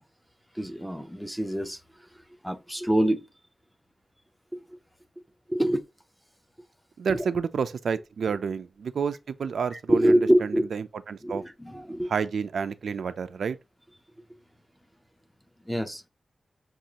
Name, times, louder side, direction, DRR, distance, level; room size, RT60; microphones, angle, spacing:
voice 1, 0.5-1.8 2.4-3.2 4.5-4.6 5.5-5.8 9.7-10.7 11.2-12.1 15.7-16.0, right 1 dB, ahead, 0.5 m, -25 dB
voice 2, 7.0-11.4 12.1-13.6, right 6 dB, 90° right, 0.3 m, -30 dB
6.1 x 2.4 x 2.8 m
wide cardioid pair, 170°, 0 cm